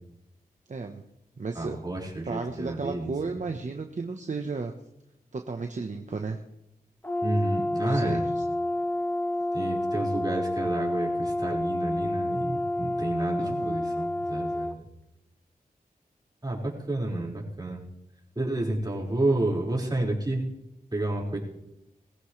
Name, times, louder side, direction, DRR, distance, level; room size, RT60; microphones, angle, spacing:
voice 1, 0.7-1.0 1.4-1.8 2.2-4.7 5.3-6.4 7.8-8.4 13.4-13.8, right 4 dB, 50° right, 4 dB, 1.1 m, -34 dB
voice 2, 1.5-3.4 7.2-8.2 9.5-14.7 16.4-17.8 18.3-20.4 20.9-21.4, right 2 dB, 25° right, -3 dB, 5.1 m, -30 dB
Brass instrument, 7.0-14.8, left 1 dB, 15° left, 0.9 m, -29 dB
22.0 x 15.0 x 3.3 m, 0.84 s
wide cardioid pair, 70°, 16 cm